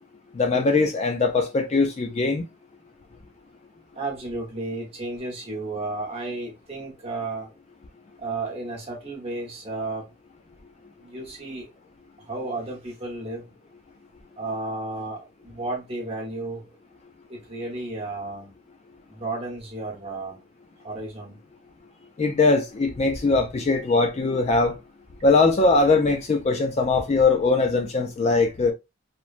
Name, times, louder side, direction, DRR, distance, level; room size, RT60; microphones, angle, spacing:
voice 1, 0.3-2.4 22.2-24.8 25.2-28.7, left 3 dB, 30° left, 0.3 m, -21 dB
voice 2, 3.9-7.5 8.2-10.1 11.0-11.7 12.2-13.5 14.4-16.6 17.3-18.5 19.1-20.4 20.8-21.4, right 2 dB, 30° right, 1.0 m, -33 dB
3.0 x 2.2 x 2.4 m
head